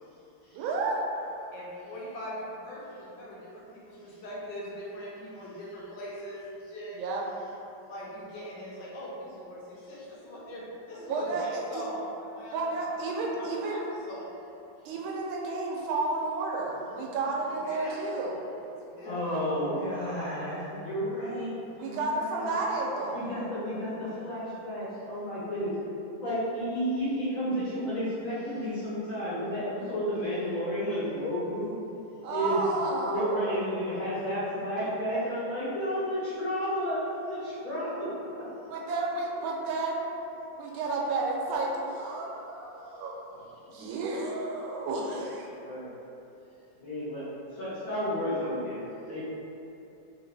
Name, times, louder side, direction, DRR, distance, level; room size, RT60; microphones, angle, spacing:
voice 1, 0.5-1.0 6.9-7.2 11.1-11.8 12.5-13.9 14.8-18.4 21.8-23.2 32.2-33.6 38.7-40.1 40.6-45.5, right 3 dB, 90° right, -2 dB, 1.4 m, -31 dB
voice 2, 1.5-7.0 7.9-12.6 13.2-14.3 17.4-17.9 18.9-19.2, equal, 70° left, -6 dB, 1.3 m, -41 dB
voice 3, 19.0-22.5 23.1-25.7 26.2-31.7 32.3-32.6 33.1-38.1 45.6-45.9 46.8-47.2 47.5-49.2, equal, 55° left, -11 dB, 1.2 m, -32 dB
3.2 x 2.8 x 3.2 m, 2.9 s
omnidirectional pair, 2.1 m